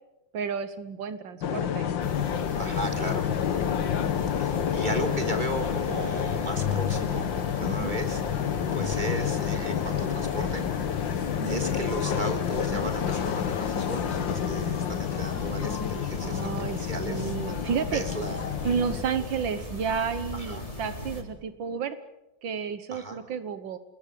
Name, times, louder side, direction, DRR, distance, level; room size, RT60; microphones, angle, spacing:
voice 1, 0.3-1.9 2.3-2.8 4.6-4.8 7.7-7.9 11.4-11.6 16.2-18.0 18.6-22.0 22.4-23.8, right 6 dB, 85° right, 11 dB, 1.9 m, -32 dB
sound 1, 1.4-19.0, left 9 dB, 85° left, 1.9 m, -29 dB
sound 2, 2.0-21.2, left 3 dB, 20° left, 3.8 m, -37 dB
voice 2, 2.6-3.3 4.4-8.2 8.7-10.6 11.5-18.5 18.8-18.9 20.3-20.6 22.9-23.2, right 1 dB, 25° right, 4 dB, 4.0 m, -36 dB
28.0 x 21.5 x 8.4 m, 0.94 s
omnidirectional pair, 2.0 m